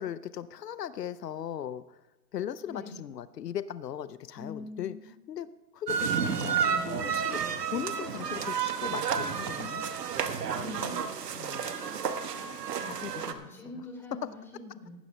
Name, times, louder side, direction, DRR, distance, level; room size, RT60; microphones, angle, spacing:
voice 1, 0.0-2.0 2.3-7.4 7.7-9.8 10.1-10.4 11.3-11.7 12.8-13.5, left 9 dB, 90° left, 15 dB, 0.7 m, -38 dB
voice 2, 2.6-3.0 4.4-5.1 6.3-7.3 10.6-11.0 12.7-14.9, left 2 dB, 5° left, -3 dB, 4.7 m, -44 dB
sound 1, 5.9-13.3, right 7 dB, 75° right, 1.3 m, -31 dB
18.5 x 15.0 x 2.2 m, 0.99 s
hypercardioid pair, 135°, 48 cm